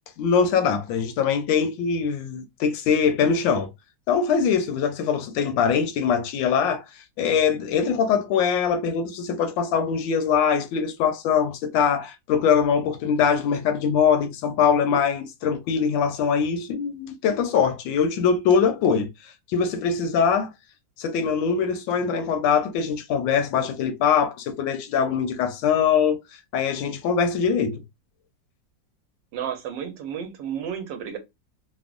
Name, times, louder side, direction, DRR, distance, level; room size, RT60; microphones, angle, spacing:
voice 1, 0.2-3.7 4.1-6.8 7.2-19.1 19.5-20.5 21.0-26.2 26.5-27.8, left 6 dB, 90° left, 1.3 m, -22 dB
voice 2, 29.3-31.2, right 8 dB, 80° right, 1.4 m, -32 dB
3.5 x 2.0 x 2.4 m
omnidirectional pair, 2.0 m